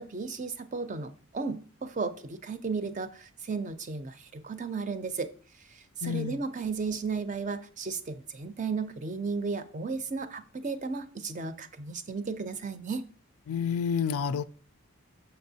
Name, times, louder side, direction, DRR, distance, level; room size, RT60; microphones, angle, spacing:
voice 1, 0.0-5.3 5.7-13.0, right 4 dB, 35° right, 0.5 m, -34 dB
voice 2, 6.0-6.4 13.5-14.4, left 7 dB, 80° left, 0.4 m, -29 dB
6.8 x 6.3 x 2.7 m
head